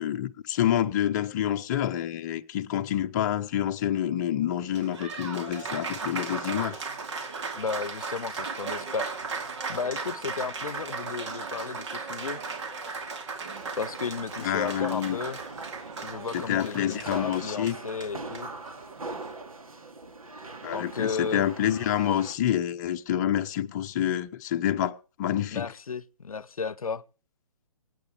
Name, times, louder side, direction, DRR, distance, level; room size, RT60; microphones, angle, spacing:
voice 1, 0.0-6.8 14.4-15.2 16.3-17.7 20.6-25.7, left 11 dB, 30° left, 0.8 m, -28 dB
Applause, 4.6-19.3, right 4 dB, 55° right, 2.7 m, -37 dB
voice 2, 7.6-9.1 9.7-12.4 13.8-15.4 16.0-18.5 20.7-21.5 25.5-27.0, left 5 dB, 75° left, 0.7 m, -34 dB
sound 1, 13.5-22.4, right 3 dB, 75° right, 2.4 m, -42 dB
25.0 x 9.3 x 3.5 m
figure-of-eight pair, 135°, 18 cm